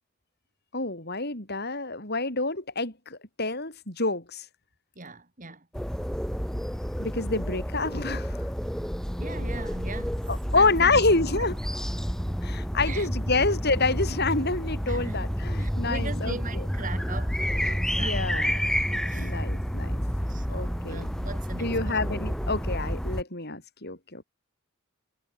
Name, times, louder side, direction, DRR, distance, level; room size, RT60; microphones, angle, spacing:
voice 1, 0.7-4.4 7.0-8.4 10.3-11.5 12.4-16.6 18.0-18.5 18.8-20.0 20.5-21.0 21.6-24.2, left 3 dB, 50° left, 7.4 m, -28 dB
voice 2, 5.0-5.7 9.2-10.2 10.5-11.1 11.3-11.5 12.8-13.1 14.9-15.2 15.6-18.5 19.1-19.3 20.2-21.9, right 3 dB, 40° right, 5.4 m, -40 dB
sound 1, 5.7-23.2, equal, 5° left, 3.4 m, -30 dB
head